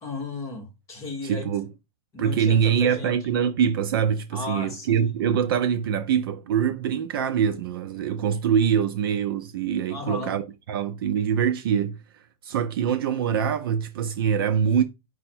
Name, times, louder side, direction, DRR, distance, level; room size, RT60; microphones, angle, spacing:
voice 1, 0.0-1.5 2.1-3.2 4.3-5.4 9.9-10.4, left 3 dB, 15° left, 0.9 m, -35 dB
voice 2, 1.2-1.7 2.2-12.0 12.4-14.8, right 8 dB, 40° right, 0.4 m, -24 dB
5.5 x 2.1 x 4.3 m
hypercardioid pair, 160°, 18 cm